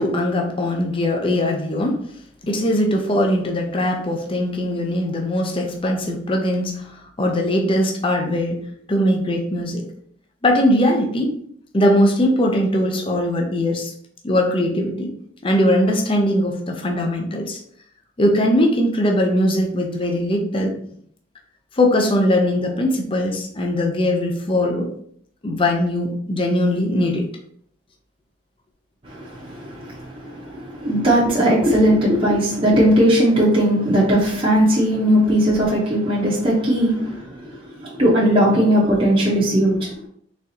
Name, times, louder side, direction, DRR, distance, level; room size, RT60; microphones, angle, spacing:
voice 1, 0.0-2.0 2.4-8.6 8.9-9.8 10.4-11.4 11.7-13.9 14.2-15.1 15.4-17.6 18.2-20.7 21.7-24.9 25.4-27.3, left 1 dB, 25° left, 1 dB, 0.5 m, -20 dB
voice 2, 29.1-39.9, equal, 25° right, -6 dB, 0.8 m, -18 dB
4.1 x 3.6 x 2.7 m, 0.65 s
head